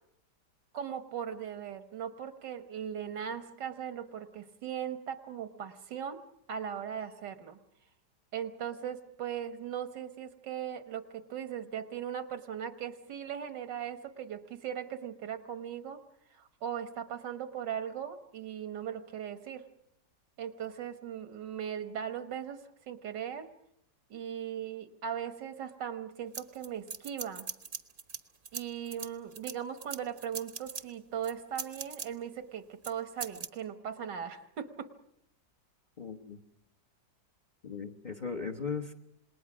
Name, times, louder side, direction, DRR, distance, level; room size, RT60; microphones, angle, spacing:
voice 1, 0.7-6.2 6.5-7.6 8.3-16.0 16.3-19.7 20.4-22.6 22.9-23.5 24.1-27.5 28.5-34.9, right 9 dB, 80° right, 10 dB, 1.9 m, -39 dB
sound 1, 26.3-28.2 28.4-30.8 31.2-32.1 32.8-32.9 33.2-33.5, right 5 dB, 35° right, 0.9 m, -40 dB
voice 2, 36.0-36.4 37.6-38.9, left 5 dB, 30° left, 6 dB, 1.0 m, -37 dB
27.0 x 20.5 x 6.1 m, 0.78 s
omnidirectional pair, 1.9 m